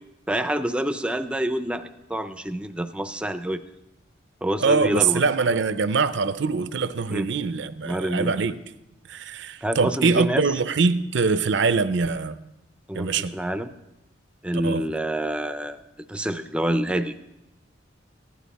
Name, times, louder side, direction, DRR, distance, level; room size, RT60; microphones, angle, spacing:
voice 1, 0.3-3.6 4.4-5.2 7.1-7.3 7.8-8.3 9.6-10.4 12.9-13.7 14.4-15.8 16.1-17.2, right 1 dB, 5° right, 9 dB, 0.5 m, -27 dB
voice 2, 4.6-8.6 9.1-12.4 12.9-13.3 14.6-14.9, right 4 dB, 65° right, 13 dB, 0.6 m, -23 dB
16.0 x 11.0 x 4.1 m, 0.91 s
head